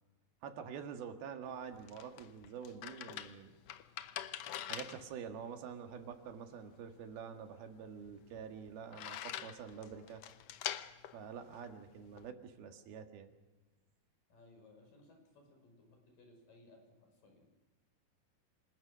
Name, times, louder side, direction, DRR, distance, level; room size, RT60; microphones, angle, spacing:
voice 1, 0.4-3.5 4.7-10.2 11.1-13.3, right 7 dB, 90° right, 6 dB, 3.7 m, -47 dB
sound 1, 1.4-12.3, left 11 dB, 80° left, 1.4 m, -46 dB
voice 2, 14.3-17.5, left 2 dB, 65° left, 3 dB, 7.7 m, -62 dB
28.0 x 20.5 x 6.3 m, 1.2 s
omnidirectional pair, 4.2 m